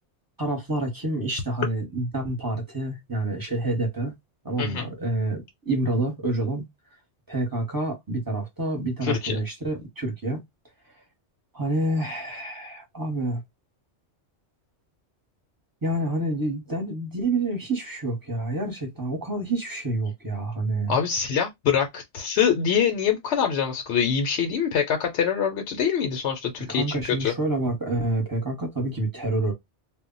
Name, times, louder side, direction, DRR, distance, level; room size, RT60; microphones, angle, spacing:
voice 1, 0.4-4.1 4.4-6.6 7.3-10.4 11.5-13.4 15.8-21.0 26.6-29.5, right 2 dB, 20° right, 0.9 m, -28 dB
voice 2, 4.6-4.9 9.0-9.4 20.9-27.3, left 7 dB, 70° left, 0.8 m, -24 dB
2.1 x 2.1 x 3.7 m
omnidirectional pair, 1.2 m